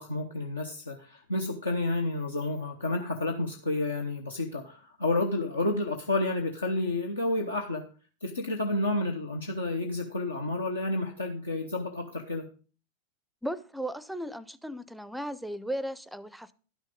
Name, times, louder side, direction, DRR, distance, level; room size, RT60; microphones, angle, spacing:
voice 1, 0.0-7.9 8.2-12.5, left 2 dB, 75° left, 3 dB, 0.9 m, -30 dB
voice 2, 13.4-16.5, right 1 dB, ahead, 18 dB, 0.5 m, -36 dB
11.0 x 6.3 x 5.2 m, 0.37 s
figure-of-eight pair, 90°, 0 cm